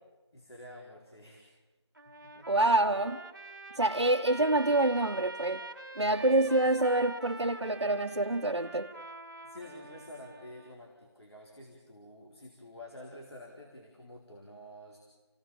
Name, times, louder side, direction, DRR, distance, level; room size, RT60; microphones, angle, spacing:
voice 1, 0.3-1.5 2.2-2.6 6.4-6.7 9.4-15.0, left 1 dB, 60° left, 4.2 m, -49 dB
Trumpet, 2.0-10.8, right 2 dB, 40° right, 1.5 m, -45 dB
voice 2, 2.5-3.2 3.8-5.6 6.0-8.9, right 2 dB, 75° right, 1.3 m, -26 dB
29.0 x 17.5 x 7.2 m
figure-of-eight pair, 175°, 15 cm